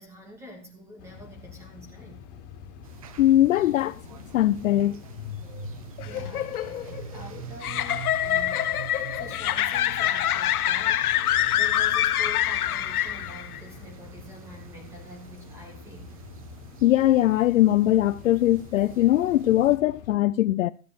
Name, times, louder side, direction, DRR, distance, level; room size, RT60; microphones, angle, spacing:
voice 1, 0.0-2.2 6.0-8.8 9.1-11.1 11.5-16.1, equal, 5° right, 2.6 m, -46 dB
sound 1, 1.0-20.2, left 7 dB, 35° left, 3.4 m, -47 dB
sound 2, 2.8-19.8, right 10 dB, 25° right, 0.5 m, -45 dB
voice 2, 3.2-4.0 4.3-5.0 5.5-5.7 16.8-20.7, left 14 dB, 65° left, 0.6 m, -21 dB
sound 3, 6.0-13.6, left 12 dB, 80° left, 1.1 m, -25 dB
14.5 x 7.3 x 6.3 m
supercardioid pair, 175°, 43 cm